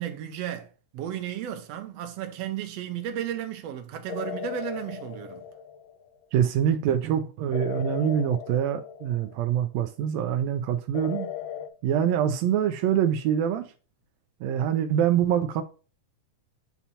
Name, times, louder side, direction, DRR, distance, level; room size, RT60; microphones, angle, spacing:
voice 1, 0.0-5.4, right 10 dB, 70° right, 1.7 m, -34 dB
sound 1, 4.1-6.1 7.5-9.6 10.9-11.7, left 9 dB, 90° left, 1.3 m, -37 dB
voice 2, 6.3-11.3 11.8-13.6 14.4-15.6, right 9 dB, 85° right, 1.5 m, -25 dB
8.4 x 2.9 x 5.5 m
omnidirectional pair, 3.6 m